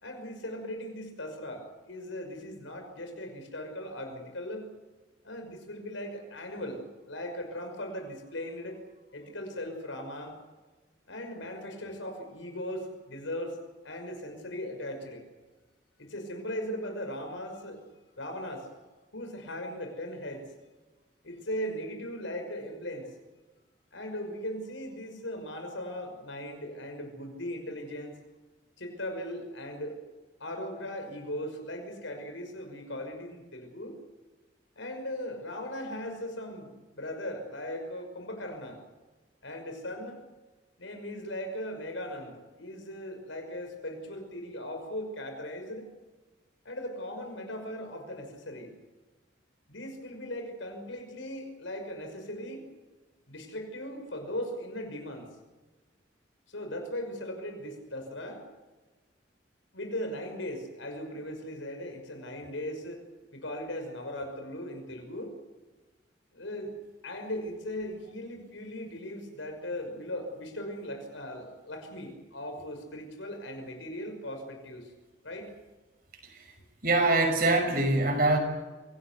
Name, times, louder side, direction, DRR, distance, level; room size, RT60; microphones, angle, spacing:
voice 1, 0.0-4.7 5.2-6.8 7.1-8.8 9.1-10.4 11.1-13.6 13.8-15.2 16.0-17.9 18.2-18.7 19.1-20.5 21.2-23.1 23.9-28.2 28.8-30.0 30.4-34.0 34.8-38.8 39.4-40.2 40.8-45.9 46.6-48.7 49.7-52.6 53.3-55.3 56.5-58.4 59.7-63.0 63.3-65.3 66.3-66.7 67.0-74.9 75.2-75.5, left 1 dB, 85° left, 6 dB, 5.8 m, -38 dB
voice 2, 76.2-76.5 76.8-78.4, right 2 dB, 50° right, 4 dB, 6.0 m, -24 dB
25.0 x 18.5 x 8.2 m, 1.3 s
head